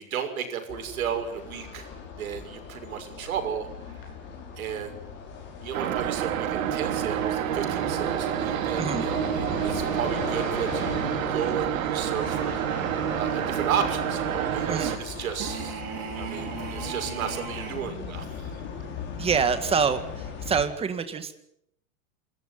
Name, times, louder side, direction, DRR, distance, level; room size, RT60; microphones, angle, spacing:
voice 1, 0.0-1.9 2.2-3.7 4.6-4.9 5.6-12.6 13.2-15.8 16.1-18.5, right 8 dB, 90° right, 6 dB, 6.3 m, -33 dB
sound 1, 0.7-20.6, left 6 dB, 25° left, 5.5 m, -38 dB
sound 2, 5.7-15.0, right 10 dB, 75° right, 2.7 m, -28 dB
voice 2, 8.8-9.1 14.7-15.0 19.2-21.3, right 6 dB, 15° right, 9 dB, 2.0 m, -26 dB
sound 3, 15.4-17.9, right 8 dB, 45° right, 5.5 m, -36 dB
27.5 x 14.0 x 9.7 m, 0.76 s
supercardioid pair, 160°, 41 cm